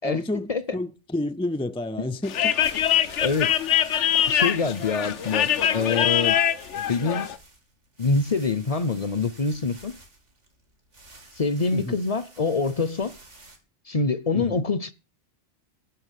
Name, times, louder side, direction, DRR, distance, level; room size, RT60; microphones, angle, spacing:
voice 1, 0.0-2.5 11.7-12.0 14.3-14.6, left 1 dB, 10° left, 0.4 m, -30 dB
sound 1, 2.2-7.4, left 10 dB, 85° left, 1.1 m, -23 dB
sound 2, 2.6-13.6, right 2 dB, 80° right, 3.2 m, -49 dB
voice 2, 3.0-3.5 4.3-6.4 6.7-7.3 8.0-9.9 11.4-13.1 13.9-14.9, left 4 dB, 35° left, 0.7 m, -25 dB
11.5 x 6.0 x 9.1 m
omnidirectional pair, 1.2 m